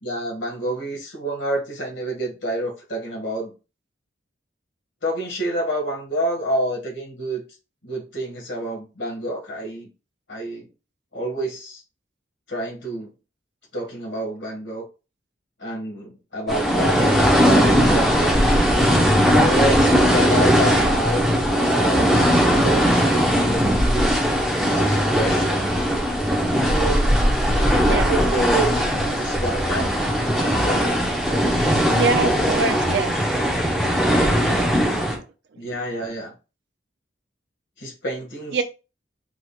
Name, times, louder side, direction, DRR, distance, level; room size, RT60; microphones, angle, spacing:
voice 1, 0.0-3.5 5.0-7.4 7.8-9.9 10.3-10.7 11.1-11.8 12.5-13.1 13.7-14.9 15.6-18.4 19.3-24.1 24.6-25.6 26.4-27.1 27.4-28.8 29.1-29.9 30.2-30.9 35.6-36.3 37.8-38.6, right 1 dB, 75° left, 0 dB, 1.8 m, -28 dB
sound 1, 16.5-35.2, equal, ahead, 1.0 m, -19 dB
voice 2, 20.7-21.0 27.8-28.1 31.9-33.1 35.1-35.2 38.5-38.6, right 5 dB, 60° right, 9 dB, 0.4 m, -24 dB
4.7 x 3.9 x 2.4 m, 0.31 s
head